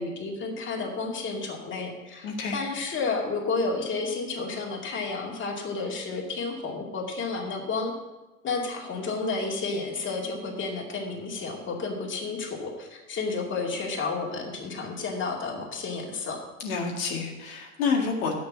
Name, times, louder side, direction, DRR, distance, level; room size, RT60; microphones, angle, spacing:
voice 1, 0.0-7.9 8.4-16.4, left 4 dB, 30° left, 0 dB, 2.5 m, -31 dB
voice 2, 2.2-2.6 16.6-18.3, left 5 dB, 70° left, 0 dB, 2.0 m, -28 dB
7.8 x 7.0 x 8.4 m, 1.1 s
hypercardioid pair, 85°, 42 cm